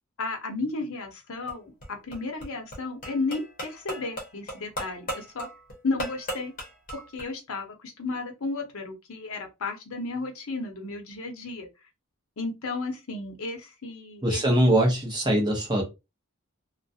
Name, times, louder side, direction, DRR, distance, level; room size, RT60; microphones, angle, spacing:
voice 1, 0.2-1.7 2.0-5.5 5.8-6.5 6.9-11.7 12.4-14.4, left 3 dB, 75° left, 0.7 m, -33 dB
sound 1, 1.3-7.3, equal, 35° left, 0.8 m, -37 dB
voice 2, 14.2-15.8, right 1 dB, 20° right, 0.7 m, -22 dB
2.3 x 2.1 x 2.6 m
head